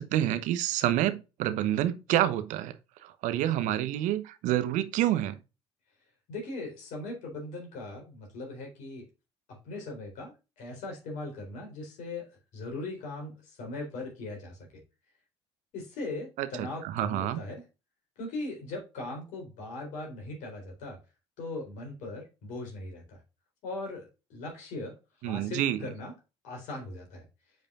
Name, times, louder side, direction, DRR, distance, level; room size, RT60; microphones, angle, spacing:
voice 1, 0.0-2.7 3.0-5.4 16.4-17.4 25.2-25.8, right 12 dB, 60° right, 1.0 m, -28 dB
voice 2, 6.3-9.0 9.5-12.3 12.5-14.6 15.7-17.6 18.2-21.0 21.4-23.2 23.6-24.9 25.2-26.1 26.4-27.2, left 2 dB, 60° left, 3.9 m, -39 dB
9.2 x 5.4 x 2.5 m
hypercardioid pair, 55°, 14 cm